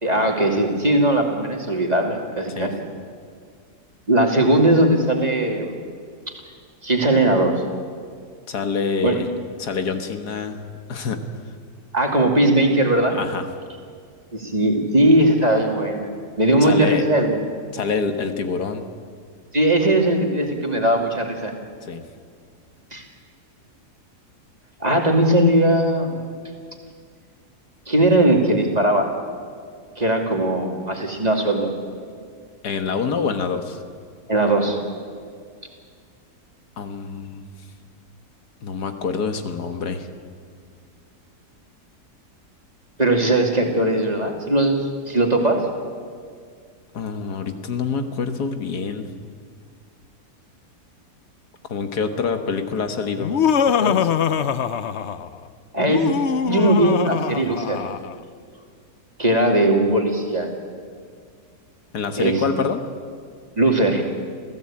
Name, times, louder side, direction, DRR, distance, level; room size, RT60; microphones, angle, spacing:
voice 1, 0.0-2.8 4.1-5.7 6.8-7.5 9.0-9.2 11.9-13.2 14.3-16.1 16.4-17.4 19.5-21.5 22.9-23.0 24.8-26.2 27.9-29.1 30.0-31.7 34.3-34.8 43.0-44.8 45.1-45.6 55.7-56.0 56.5-57.8 59.2-60.5 62.2-62.4 63.6-64.0, right 1 dB, 25° right, 2 dB, 2.6 m, -19 dB
voice 2, 8.5-9.3 9.6-10.6 10.9-11.2 13.1-13.5 16.6-17.1 17.7-18.9 21.8-22.0 32.6-33.8 36.8-37.5 38.6-40.1 46.9-49.1 51.7-53.3 53.7-54.1 61.9-62.8, left 5 dB, 80° left, 7 dB, 2.0 m, -26 dB
Laughter, 53.2-55.3 55.8-58.1, left 7 dB, 55° left, 0.9 m, -22 dB
27.5 x 16.0 x 8.7 m, 2.1 s
omnidirectional pair, 1.7 m